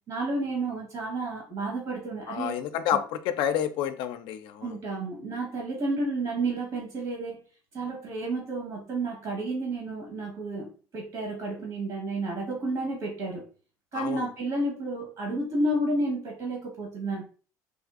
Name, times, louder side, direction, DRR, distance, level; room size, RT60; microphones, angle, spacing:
voice 1, 0.1-2.6 2.9-3.0 4.6-7.5 7.7-13.4 13.9-17.2, right 2 dB, 60° right, -2 dB, 1.2 m, -31 dB
voice 2, 2.3-4.8 13.9-14.3, left 10 dB, 70° left, 9 dB, 0.4 m, -29 dB
3.5 x 2.5 x 2.4 m, 0.39 s
supercardioid pair, 95°, 8 cm